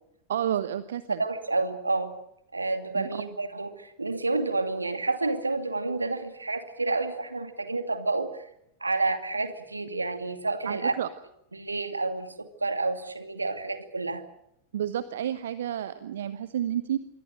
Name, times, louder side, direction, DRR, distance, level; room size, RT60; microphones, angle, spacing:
voice 1, 0.3-1.2 2.9-3.2 10.7-11.1 14.7-17.0, right 10 dB, 60° right, 14 dB, 1.0 m, -30 dB
voice 2, 1.2-2.1 2.5-8.4 8.8-10.9 11.5-14.2, right 3 dB, 80° right, 8 dB, 2.5 m, -29 dB
27.0 x 22.5 x 6.7 m, 0.78 s
figure-of-eight pair, 90°, 0 cm